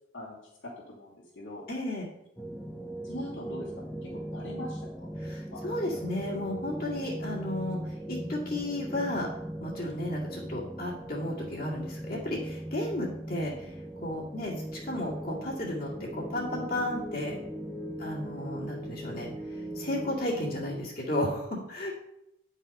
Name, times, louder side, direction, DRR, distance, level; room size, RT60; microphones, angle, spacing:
voice 1, 0.6-1.7 3.0-3.7 4.0-4.8 5.5-5.6 6.9-7.0, left 1 dB, 80° left, -7 dB, 2.8 m, -41 dB
voice 2, 1.7-2.1 5.2-7.8 8.1-9.3 9.6-13.7 14.0-17.4 18.0-21.9, left 1 dB, 50° left, -5 dB, 2.3 m, -33 dB
sound 1, 2.4-20.8, right 1 dB, 5° left, 0.7 m, -39 dB
10.0 x 5.6 x 5.4 m, 0.83 s
head